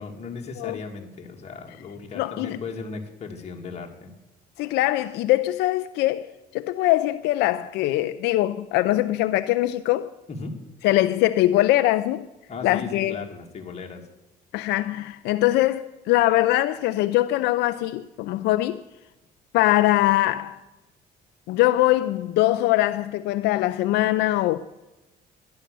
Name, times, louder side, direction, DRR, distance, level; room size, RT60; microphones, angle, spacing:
voice 1, 0.0-4.1 10.3-10.6 12.5-14.0, left 4 dB, 40° left, 2.5 m, -36 dB
voice 2, 2.1-2.6 4.6-10.1 10.8-12.3 12.6-13.2 14.5-18.8 19.5-20.6 21.5-24.6, left 16 dB, 85° left, 0.5 m, -22 dB
13.0 x 10.5 x 6.8 m
cardioid pair, 110°, 17 cm